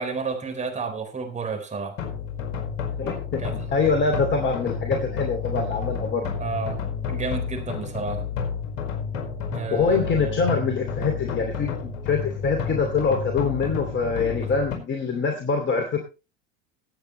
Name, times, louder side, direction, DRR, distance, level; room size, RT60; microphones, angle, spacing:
voice 1, 0.0-2.0 3.4-3.6 6.4-6.8 7.1-8.3 9.5-10.4 14.4-14.5, right 4 dB, 20° right, 4 dB, 4.2 m, -31 dB
sound 1, 2.0-14.8, left 6 dB, 55° left, 5.1 m, -30 dB
voice 2, 3.0-6.3 9.7-16.0, left 4 dB, 30° left, 4 dB, 2.6 m, -24 dB
19.5 x 8.6 x 3.2 m, 0.30 s
hypercardioid pair, 85°, 36 cm